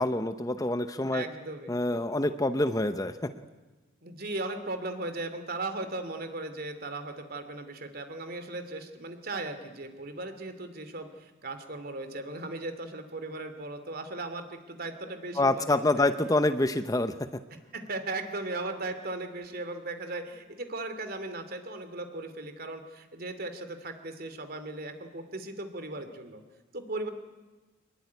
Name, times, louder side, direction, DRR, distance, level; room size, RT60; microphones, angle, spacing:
voice 1, 0.0-1.2 1.7-3.1 15.4-17.1, left 2 dB, 20° left, 10 dB, 0.8 m, -26 dB
voice 2, 1.1-1.7 4.0-16.0 17.5-26.4 26.7-27.1, right 2 dB, 50° right, 8 dB, 2.8 m, -37 dB
25.5 x 20.5 x 9.5 m, 1.2 s
head